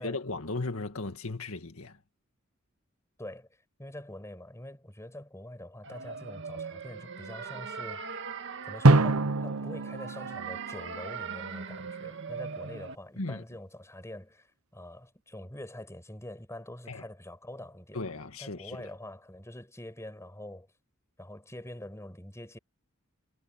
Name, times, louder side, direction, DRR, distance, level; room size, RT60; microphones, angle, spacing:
voice 1, 0.0-2.0 13.2-13.4 16.9-17.0 17.9-18.9, left 2 dB, 85° left, 1.9 m, -36 dB
voice 2, 3.2-8.0 8.6-14.5 14.7-18.0 18.4-20.7 21.2-22.6, left 1 dB, 15° left, 6.5 m, -45 dB
sound 1, 5.8-13.0, right 5 dB, 60° right, 2.0 m, -40 dB
Drum, 8.8-11.5, right 2 dB, 85° right, 1.0 m, -25 dB
head